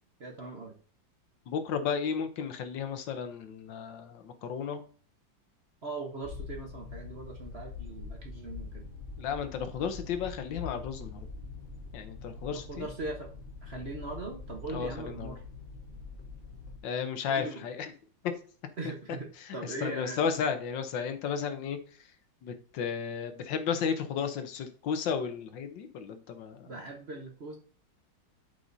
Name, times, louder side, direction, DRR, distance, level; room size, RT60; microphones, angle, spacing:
voice 1, 0.2-0.8 5.8-8.9 12.5-13.3 13.6-15.4 17.3-17.6 18.8-20.3 26.7-27.6, right 3 dB, 40° right, 1 dB, 1.0 m, -40 dB
voice 2, 1.5-4.8 9.2-11.3 11.9-12.9 14.7-15.4 16.8-17.9 19.4-19.5 19.8-21.8 22.4-26.7, left 6 dB, 75° left, 8 dB, 1.5 m, -33 dB
sound 1, 6.2-16.8, left 4 dB, 45° left, 1.3 m, -44 dB
11.5 x 5.1 x 2.7 m, 0.42 s
omnidirectional pair, 2.1 m